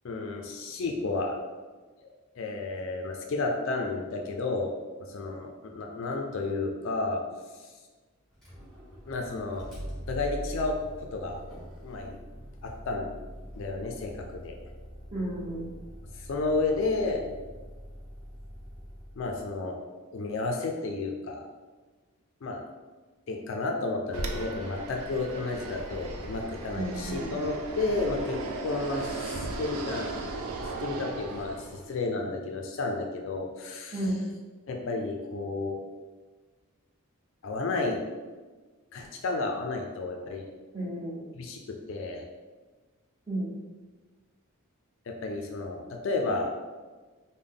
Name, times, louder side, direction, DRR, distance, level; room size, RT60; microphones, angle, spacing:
voice 1, 0.0-1.4 2.0-4.7 5.0-7.2 7.6-7.7 9.1-9.7 10.1-10.8 11.1-11.4 11.8-12.2 12.6-13.1 13.6-14.6 16.1-17.2 19.2-19.8 20.1-21.5 22.4-22.6 23.3-30.2 30.8-34.1 34.7-35.8 37.4-38.0 38.9-40.5 41.3-42.2 45.1-46.5, left 3 dB, 55° left, 2 dB, 0.4 m, -32 dB
Motor vehicle (road), 8.3-19.5, equal, ahead, 1.2 m, -43 dB
voice 2, 15.1-15.7 26.7-27.3 33.9-34.2 40.7-41.2 43.3-43.5, right 1 dB, 15° right, -7 dB, 0.9 m, -32 dB
Fixed-wing aircraft airplane, 24.1-31.9, right 3 dB, 75° right, 0.4 m, -36 dB
3.4 x 2.1 x 3.7 m, 1.3 s
head